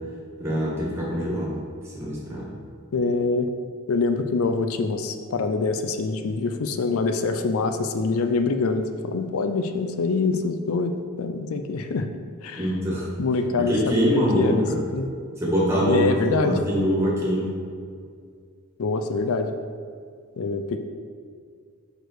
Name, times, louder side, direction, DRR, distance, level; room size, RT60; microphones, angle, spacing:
voice 1, 0.4-1.6 2.0-2.5 12.6-13.1 13.6-14.8 15.4-17.5, equal, 10° right, -6 dB, 1.8 m, -24 dB
voice 2, 2.9-3.5 3.9-10.9 11.2-12.1 12.4-12.7 13.2-15.1 15.9-16.6 18.8-19.5 20.4-20.8, left 4 dB, 80° left, 7 dB, 0.5 m, -25 dB
6.5 x 4.9 x 4.6 m, 2.1 s
head